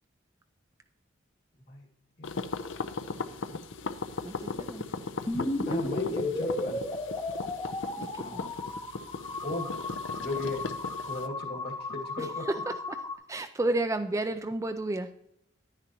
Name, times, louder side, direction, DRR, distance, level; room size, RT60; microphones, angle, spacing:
sound 1, 2.2-11.3, left 4 dB, 65° left, 0.6 m, -38 dB
voice 1, 3.1-3.6 5.7-6.9 8.2-8.5 9.4-9.8 10.2-10.6 11.1-12.4, left 2 dB, 50° left, 2 dB, 2.0 m, -37 dB
voice 2, 4.2-4.8 5.7-5.9 8.0-8.4 12.2-13.0 13.3-15.1, right 2 dB, 15° right, 8 dB, 0.3 m, -32 dB
sound 2, 5.3-13.2, left 2 dB, 20° left, 0.7 m, -34 dB
10.5 x 9.8 x 3.0 m, 0.75 s
head